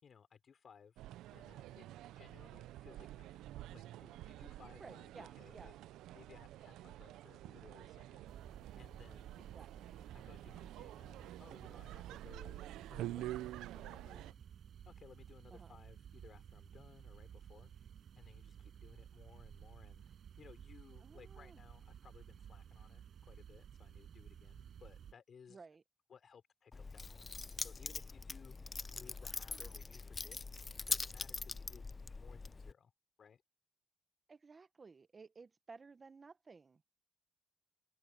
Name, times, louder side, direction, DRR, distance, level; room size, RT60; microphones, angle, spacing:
voice 1, 0.0-1.0 1.3-1.9 2.1-5.8 6.1-8.2 8.8-9.4 10.2-14.4 14.9-17.7 18.2-25.6 26.1-30.4 30.9-31.9 32.1-32.9 33.2-33.4, left 7 dB, 50° left, 5.1 m, -61 dB
sound 1, 1.0-14.3, right 15 dB, 90° right, 0.5 m, -49 dB
voice 2, 4.8-5.7 9.4-10.0 15.5-15.8 21.0-21.6 25.5-25.8 29.2-29.8 34.3-36.8, right 4 dB, 35° right, 1.1 m, -57 dB
sound 2, 8.3-25.1, right 8 dB, 60° right, 6.5 m, -55 dB
Keys jangling, 26.7-32.7, left 3 dB, 25° left, 0.6 m, -43 dB
cardioid pair, 90°, 0 cm